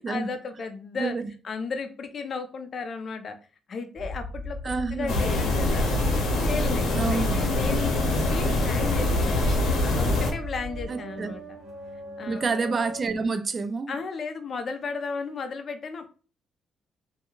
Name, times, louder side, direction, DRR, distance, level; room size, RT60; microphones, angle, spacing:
voice 1, 0.0-1.2 1.4-3.4 3.7-5.9 6.4-9.4 9.8-11.6 12.2-12.5 13.9-16.1, left 4 dB, 50° left, 0.5 m, -34 dB
sound 1, 3.9-10.9, left 2 dB, 5° left, 0.8 m, -36 dB
voice 2, 4.6-5.2 6.9-7.4 10.9-11.3 12.3-14.0, right 4 dB, 35° right, 0.4 m, -28 dB
sound 2, 5.1-10.3, left 2 dB, 75° left, 0.8 m, -24 dB
sound 3, 8.8-13.1, right 2 dB, 70° right, 0.9 m, -43 dB
2.3 x 2.2 x 3.0 m
cardioid pair, 90°, 0 cm